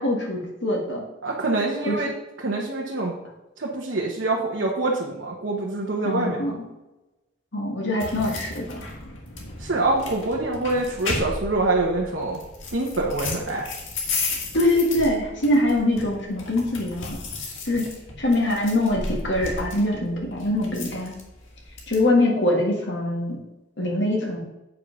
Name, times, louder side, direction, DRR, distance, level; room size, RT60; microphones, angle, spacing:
voice 1, 0.0-1.0 1.8-2.0 6.0-6.5 7.5-8.8 14.5-17.2 17.7-17.8 18.2-21.2 21.9-23.4 23.8-24.4, left 1 dB, 65° left, -1 dB, 1.8 m, -23 dB
voice 2, 1.2-2.1 2.4-3.1 3.6-6.6 9.6-12.4 12.7-13.7, right 2 dB, 65° right, -3 dB, 1.2 m, -25 dB
sound 1, 8.0-22.0, left 3 dB, 85° left, 1.8 m, -34 dB
8.5 x 5.4 x 5.2 m, 1.0 s
head